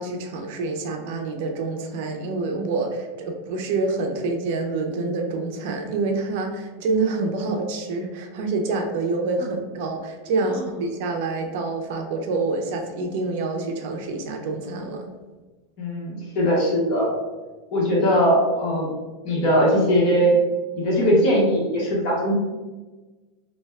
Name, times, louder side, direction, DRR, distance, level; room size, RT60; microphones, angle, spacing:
voice 1, 0.0-15.1, right 3 dB, 60° right, 3 dB, 0.5 m, -27 dB
voice 2, 15.8-17.1 17.7-18.9 19.2-20.4 20.7-22.4, equal, 45° left, -4 dB, 1.1 m, -20 dB
2.7 x 2.2 x 3.2 m, 1.2 s
supercardioid pair, 155°, 0 cm